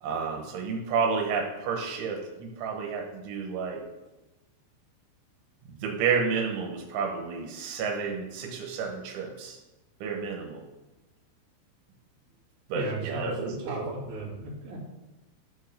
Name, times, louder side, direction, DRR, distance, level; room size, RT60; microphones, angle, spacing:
voice 1, 0.0-3.8 5.7-9.6 10.0-10.6 12.7-13.9, right 5 dB, 80° right, 2 dB, 3.5 m, -30 dB
voice 2, 12.7-14.8, right 2 dB, 35° right, -5 dB, 2.7 m, -36 dB
12.5 x 4.7 x 6.6 m, 1.1 s
omnidirectional pair, 5.4 m